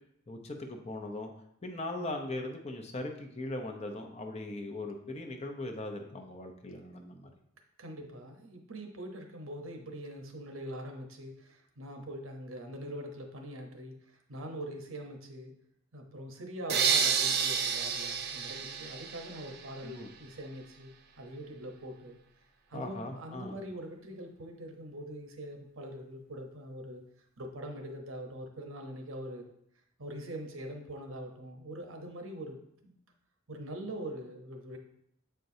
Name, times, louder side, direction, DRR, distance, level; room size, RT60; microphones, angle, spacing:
voice 1, 0.3-1.3 1.6-7.3 19.8-20.1 22.7-23.6, left 2 dB, 30° left, 3 dB, 0.7 m, -39 dB
voice 2, 7.8-15.5 15.9-20.9 21.2-22.2 22.7-27.0 27.4-29.4 30.0-32.9 33.5-34.8, right 1 dB, 80° right, 3 dB, 1.0 m, -43 dB
sound 1, 16.7-19.7, right 6 dB, 50° right, 0.5 m, -30 dB
7.7 x 4.5 x 2.7 m, 0.74 s
head